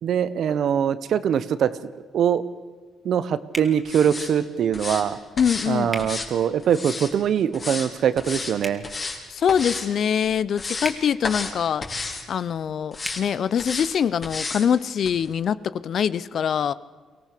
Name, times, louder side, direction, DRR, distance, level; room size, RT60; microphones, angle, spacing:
voice 1, 0.0-2.4 3.0-5.2 5.7-8.8, right 8 dB, 65° right, 14 dB, 1.1 m, -23 dB
sound 1, 3.5-3.7 5.9-6.1 8.6-8.8 10.8-11.0 13.0-13.2, right 1 dB, 10° right, 2.7 m, -33 dB
sound 2, 3.9-4.3 4.7-5.0 5.4-5.7 6.0-7.1 7.5-7.9 8.2-8.5 8.8-9.2 9.5-9.9 10.3-10.9 11.2-11.5 11.8-12.2 12.9-13.2 13.6-13.9 14.2-14.7 15.0-15.1, left 3 dB, 35° left, 4.6 m, -32 dB
voice 2, 5.4-6.1 9.3-11.9 12.3-16.7, left 8 dB, 60° left, 18 dB, 0.7 m, -24 dB
24.0 x 17.5 x 6.7 m, 1.5 s
cardioid pair, 90°, 0 cm